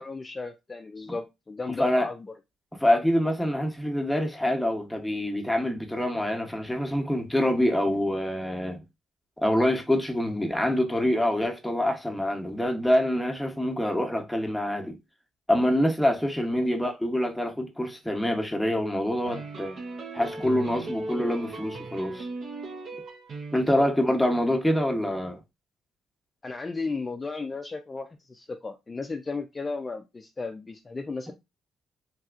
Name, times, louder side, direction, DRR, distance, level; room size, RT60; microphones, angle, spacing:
voice 1, 0.0-2.3 2.9-3.0 16.6-16.7 23.5-23.8 26.4-31.3, left 3 dB, 25° left, 0.4 m, -35 dB
voice 2, 1.8-2.1 2.8-8.8 9.4-15.0 15.5-19.8 20.1-22.3 23.5-25.4, left 1 dB, ahead, 0.8 m, -25 dB
sound 1, 19.2-23.9, right 2 dB, 55° right, 0.7 m, -38 dB
3.3 x 2.7 x 2.4 m
cardioid pair, 90°, 0 cm